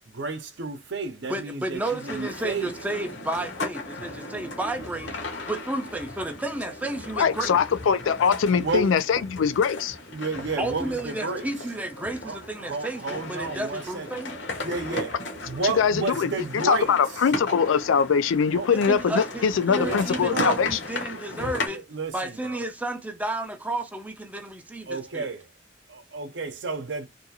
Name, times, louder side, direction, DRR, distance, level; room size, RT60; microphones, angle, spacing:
voice 1, 0.1-2.7 8.6-8.9 10.1-11.5 12.2-14.1 14.6-15.2 15.5-17.0 18.5-18.7 19.8-20.6 21.1-22.6 24.9-25.5 25.9-27.1, right 3 dB, 65° right, 0.6 m, -31 dB
voice 2, 1.3-5.1 5.5-7.6 10.6-14.4 18.7-21.8 22.1-25.3, right 2 dB, 10° right, 0.4 m, -32 dB
sound 1, 1.8-21.7, left 2 dB, 65° left, 0.9 m, -36 dB
voice 3, 7.2-10.0 15.8-16.3 16.6-20.8, left 6 dB, 90° left, 0.4 m, -22 dB
2.6 x 2.4 x 2.7 m
head